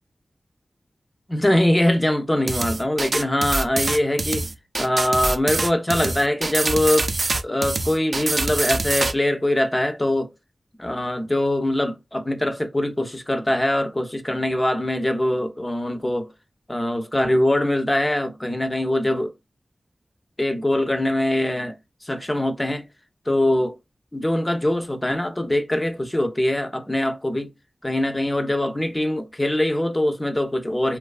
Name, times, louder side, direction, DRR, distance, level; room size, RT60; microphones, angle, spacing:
voice 1, 1.3-4.5 4.8-7.1 7.4-10.3 10.8-16.3 16.7-19.3 20.4-21.8 22.0-22.9 23.3-23.8 24.1-27.5 27.8-31.0, left 1 dB, 20° left, 0.4 m, -22 dB
sound 1, 2.5-9.1, right 2 dB, 55° right, 0.3 m, -25 dB
2.5 x 2.3 x 2.3 m
wide cardioid pair, 80°, 0 cm